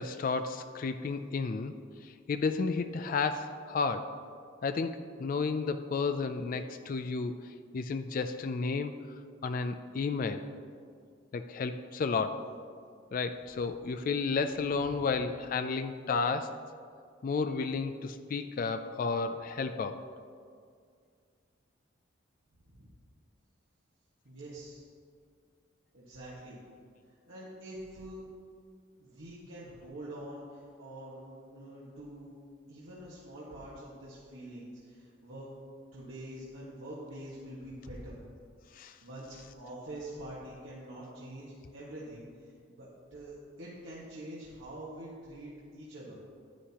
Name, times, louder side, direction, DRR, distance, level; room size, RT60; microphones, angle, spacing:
voice 1, 0.0-1.7 2.0-4.1 4.6-7.4 7.7-8.9 9.4-10.4 11.3-12.4 13.1-16.6 17.2-20.0 38.8-38.9, left 4 dB, 45° left, 9 dB, 0.3 m, -32 dB
voice 2, 14.7-15.1 22.7-22.9 24.2-24.8 25.9-26.6 27.3-28.2 29.0-32.3 32.7-35.5 35.9-38.1 38.8-46.2, right 1 dB, 80° right, -8 dB, 1.6 m, -45 dB
10.0 x 9.9 x 2.9 m, 2.2 s
head